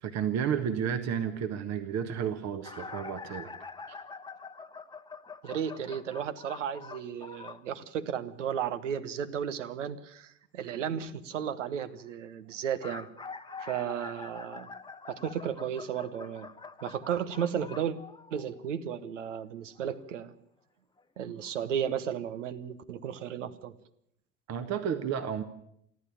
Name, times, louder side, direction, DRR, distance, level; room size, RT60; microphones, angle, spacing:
voice 1, 0.0-3.5 3.9-4.0 24.5-25.4, right 8 dB, 45° right, 9 dB, 1.5 m, -32 dB
sound 1, 2.6-7.7 12.5-18.7 19.8-19.9 21.0-21.1 21.4-21.5, left 4 dB, 10° left, 1.1 m, -45 dB
voice 2, 5.4-13.1 13.6-14.7 15.1-16.5 16.8-18.0 18.3-20.3 21.2-23.7, right 8 dB, 70° right, 13 dB, 1.3 m, -34 dB
29.5 x 12.0 x 8.7 m, 0.73 s
figure-of-eight pair, 65°, 38 cm